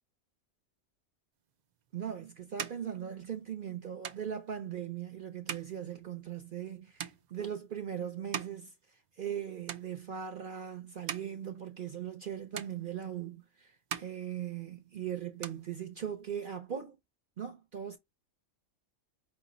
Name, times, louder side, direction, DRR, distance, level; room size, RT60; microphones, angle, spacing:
sound 1, 1.7-9.4 9.6-10.4 10.8-12.3 12.5-13.4 13.7-15.0 15.2-16.3, right 8 dB, 90° right, 0.3 m, -44 dB
voice 1, 1.9-17.0 17.4-18.0, right 9 dB, 50° right, 0.7 m, -39 dB
5.3 x 2.1 x 3.7 m
omnidirectional pair, 1.4 m